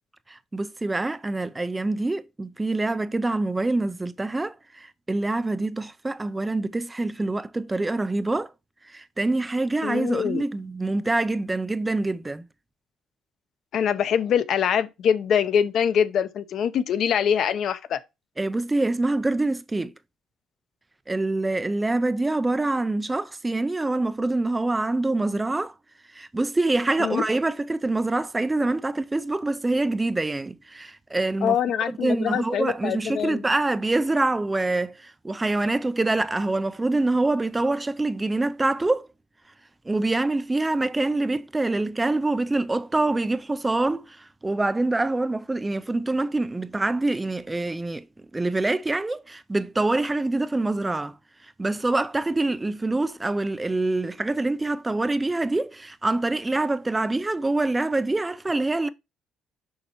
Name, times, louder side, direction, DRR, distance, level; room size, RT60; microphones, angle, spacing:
voice 1, 0.3-8.5 8.9-12.4 18.4-19.9 21.1-25.7 26.1-31.6 31.9-39.1 39.9-48.0 48.3-51.1 51.6-58.9, right 2 dB, 10° right, 0.3 m, -25 dB
voice 2, 9.8-10.4 13.7-18.0 27.0-27.2 31.4-33.4, left 8 dB, 50° left, 0.7 m, -24 dB
6.6 x 5.5 x 2.9 m
cardioid pair, 150°, 0 cm